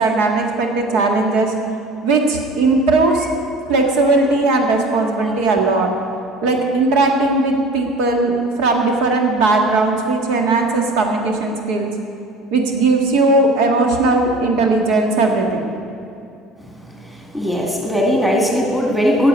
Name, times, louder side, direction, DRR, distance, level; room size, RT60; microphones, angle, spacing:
voice 1, 0.0-1.5 2.0-3.3 3.7-5.9 6.4-11.9 12.5-15.5, right 3 dB, 80° right, 2 dB, 1.8 m, -17 dB
voice 2, 16.9-19.3, equal, ahead, -1 dB, 1.7 m, -19 dB
11.5 x 7.1 x 9.4 m, 2.5 s
cardioid pair, 160°, 0 cm